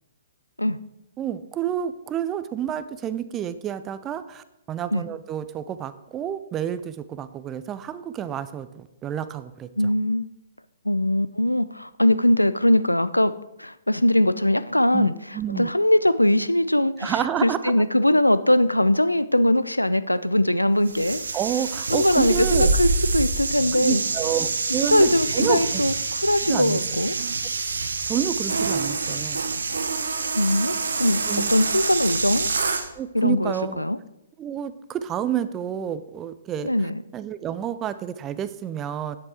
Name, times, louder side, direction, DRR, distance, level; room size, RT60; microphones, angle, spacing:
voice 1, 1.2-9.7 14.9-15.1 15.3-15.7 17.0-17.7 21.3-22.7 23.7-25.8 26.5-26.8 28.0-29.4 31.3-31.5 33.0-33.8 34.4-36.7 37.1-39.2, right 9 dB, 20° right, 13 dB, 0.5 m, -29 dB
voice 2, 9.8-10.2 10.8-15.1 15.6-17.1 17.4-21.2 21.9-24.0 24.9-27.1 30.3-32.5 33.1-34.0 36.6-37.0, left 1 dB, 90° left, 15 dB, 0.4 m, -21 dB
sound 1, 20.9-32.9, right 4 dB, 70° right, 0.9 m, -26 dB
8.9 x 7.9 x 4.3 m, 0.91 s
figure-of-eight pair, 120°, 0 cm